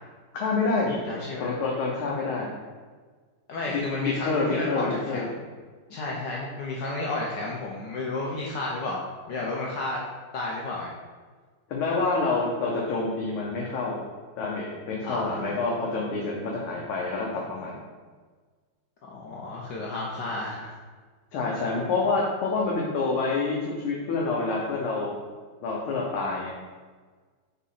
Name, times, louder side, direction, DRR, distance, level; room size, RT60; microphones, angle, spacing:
voice 1, 0.3-1.0 1.4-2.5 3.7-5.3 11.7-14.0 14.4-17.8 21.3-25.1 25.6-26.5, left 3 dB, 75° left, -3 dB, 1.9 m, -27 dB
voice 2, 1.0-1.6 3.5-5.3 5.9-9.0 9.3-10.0 10.3-10.9 15.0-15.4 19.0-20.8, left 2 dB, 60° left, -3 dB, 1.4 m, -32 dB
6.3 x 4.1 x 5.7 m, 1.4 s
omnidirectional pair, 2.3 m